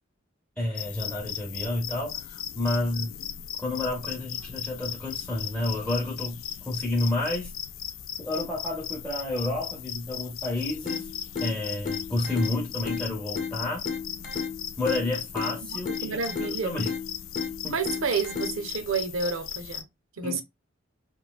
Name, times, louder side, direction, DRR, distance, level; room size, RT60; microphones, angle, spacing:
voice 1, 0.6-3.2 3.6-7.5 8.2-11.1 11.4-13.9 14.8-16.9 17.6-17.8 20.2-20.4, left 2 dB, 5° left, 0.5 m, -30 dB
sound 1, 0.8-19.8, left 10 dB, 75° left, 0.3 m, -37 dB
sound 2, 10.9-18.9, left 5 dB, 40° left, 0.8 m, -35 dB
voice 2, 16.0-16.8 17.7-19.8 20.2-20.4, right 5 dB, 90° right, 0.6 m, -29 dB
3.0 x 2.6 x 2.2 m
head